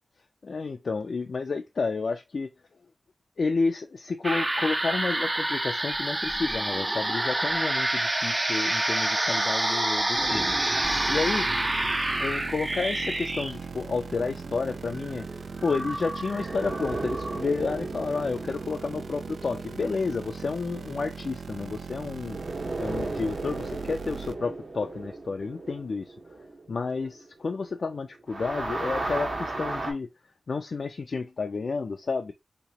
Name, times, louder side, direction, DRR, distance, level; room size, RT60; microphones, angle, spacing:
voice 1, 0.4-2.5 3.4-10.5 11.1-11.5 12.2-15.3 15.6-22.4 22.8-26.1 26.7-30.1 30.5-32.3, left 4 dB, 70° left, 0.4 m, -30 dB
sound 1, 4.2-17.4, right 1 dB, 30° right, 0.6 m, -28 dB
sound 2, 10.1-14.6 16.4-21.8 22.2-27.9 28.2-29.9, right 2 dB, 60° right, 1.4 m, -37 dB
sound 3, 10.8-24.4, right 5 dB, 80° right, 0.3 m, -40 dB
3.5 x 2.9 x 2.8 m
cardioid pair, 55°, 0 cm